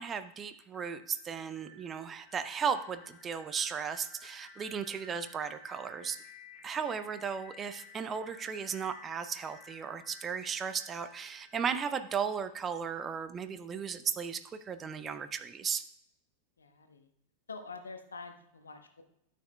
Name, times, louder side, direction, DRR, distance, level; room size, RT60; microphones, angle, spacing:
voice 1, 0.0-6.2 6.6-15.8, right 6 dB, 25° right, 10 dB, 0.5 m, -35 dB
sound 1, 0.7-12.5, left 3 dB, 20° left, 3.4 m, -55 dB
voice 2, 16.6-17.1 17.5-19.0, left 4 dB, 75° left, 7 dB, 0.9 m, -46 dB
13.0 x 6.7 x 2.2 m, 0.76 s
figure-of-eight pair, 90°, 0 cm